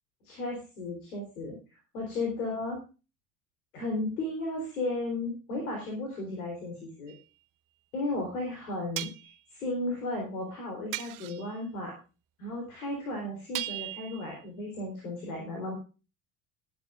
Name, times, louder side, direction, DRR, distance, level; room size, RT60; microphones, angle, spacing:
voice 1, 0.2-1.6 1.9-2.8 3.7-7.1 7.9-12.0 12.4-15.8, left 2 dB, 80° left, 1 dB, 3.7 m, -34 dB
sound 1, 7.1-7.2 9.0-9.4 10.9-11.6 13.5-14.4, right 17 dB, 45° right, 0.9 m, -37 dB
18.5 x 9.5 x 2.5 m, 0.32 s
hypercardioid pair, 70°, 43 cm